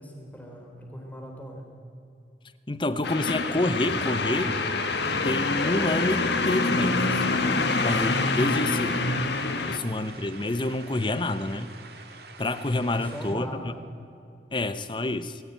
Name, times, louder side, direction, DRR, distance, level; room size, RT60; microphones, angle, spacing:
voice 1, 0.0-1.7 13.0-13.8, equal, 10° left, 1 dB, 3.5 m, -40 dB
voice 2, 2.7-4.6 5.2-7.2 7.8-9.1 9.7-11.7 12.4-13.5 14.5-15.4, left 2 dB, 25° left, 12 dB, 0.8 m, -28 dB
sound 1, 3.0-9.8, left 3 dB, 75° left, 1.5 m, -26 dB
sound 2, 4.0-13.4, right 4 dB, 65° right, 2.0 m, -47 dB
22.0 x 14.0 x 9.1 m, 2.6 s
head